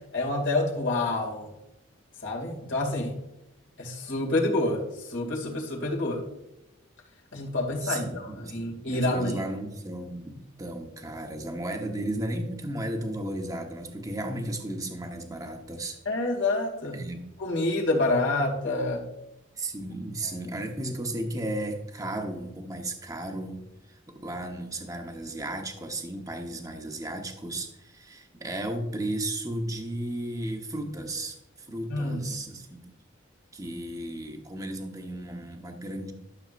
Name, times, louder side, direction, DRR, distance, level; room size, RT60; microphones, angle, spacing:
voice 1, 0.1-1.5 2.2-3.1 3.8-6.2 7.3-9.4 16.1-17.0 17.4-19.0 20.2-20.3 31.9-32.2, left 2 dB, 60° left, -2 dB, 2.3 m, -28 dB
voice 2, 7.8-16.0 16.9-17.2 19.6-23.6 23.9-32.8 33.5-36.1, right 1 dB, 15° right, 3 dB, 1.0 m, -34 dB
12.5 x 6.9 x 2.5 m, 0.91 s
head